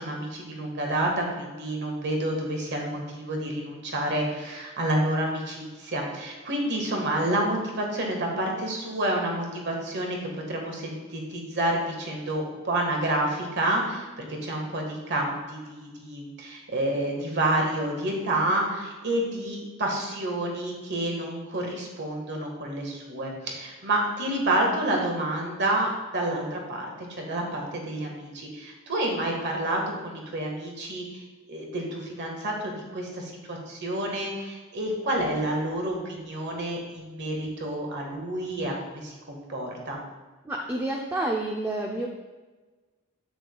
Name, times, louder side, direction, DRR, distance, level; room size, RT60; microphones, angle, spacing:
voice 1, 0.0-10.2 10.5-40.0, right 1 dB, 55° right, 1 dB, 1.5 m, -29 dB
voice 2, 40.4-42.1, right 2 dB, 10° right, -1 dB, 0.6 m, -29 dB
8.9 x 8.7 x 2.3 m, 1.3 s
head